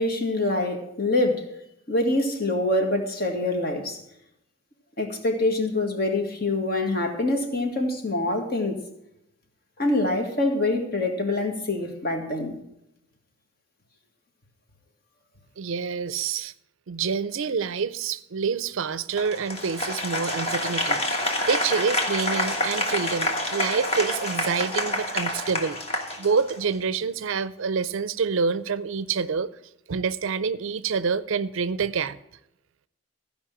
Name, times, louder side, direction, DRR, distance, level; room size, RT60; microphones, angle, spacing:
voice 1, 0.0-1.4 1.9-4.0 5.0-8.8 9.8-12.6, left 2 dB, 45° left, 1.8 m, -25 dB
voice 2, 15.6-16.5 16.9-25.8 26.2-29.5 29.9-32.2, right 5 dB, 65° right, 0.5 m, -27 dB
Applause, 19.2-26.7, left 1 dB, 30° left, 1.4 m, -28 dB
15.0 x 5.4 x 7.3 m
head